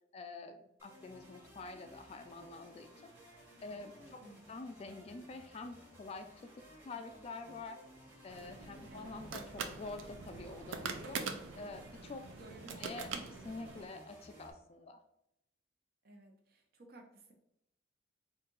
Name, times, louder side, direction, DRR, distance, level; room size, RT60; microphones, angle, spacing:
voice 1, 0.1-3.1 3.6-4.2 4.5-6.5 6.8-7.8 8.2-11.2 11.6-12.3 12.8-13.1 13.4-15.0, left 3 dB, 30° left, 8 dB, 0.3 m, -47 dB
sound 1, 0.8-14.5, equal, 10° right, 1.1 m, -58 dB
voice 2, 4.0-4.5 8.9-9.2 12.3-13.4 16.0-17.3, right 2 dB, 50° right, 3 dB, 0.7 m, -56 dB
sound 2, 8.3-13.9, right 5 dB, 85° right, 0.5 m, -44 dB
4.1 x 2.7 x 3.9 m, 0.83 s
head